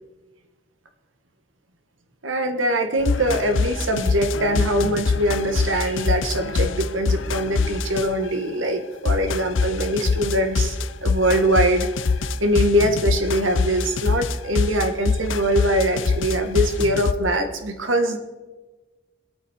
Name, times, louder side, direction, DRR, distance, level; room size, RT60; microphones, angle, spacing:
voice 1, 2.2-10.7 11.0-11.9 12.4-18.2, right 1 dB, 85° right, 6 dB, 1.7 m, -22 dB
sound 1, 3.0-8.3 9.1-17.1, left 4 dB, 80° left, 0.6 m, -24 dB
22.0 x 8.6 x 4.5 m, 1.2 s
head